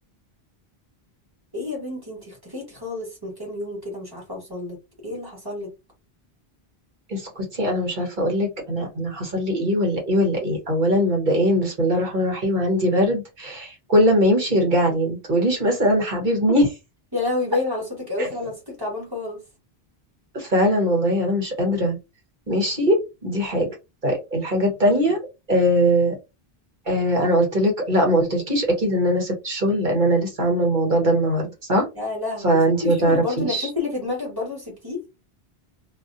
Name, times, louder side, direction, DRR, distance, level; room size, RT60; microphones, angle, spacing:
voice 1, 1.5-4.8 5.0-5.7 16.2-16.4 17.1-19.4 24.9-25.0 31.9-35.0, left 3 dB, 20° right, 1.7 m, -29 dB
voice 2, 7.1-16.7 18.2-18.3 20.3-22.0 22.5-23.7 24.0-25.2 25.5-26.2 26.9-31.9 32.4-33.7, equal, 50° right, 1.5 m, -21 dB
2.9 x 2.7 x 2.6 m
omnidirectional pair, 1.0 m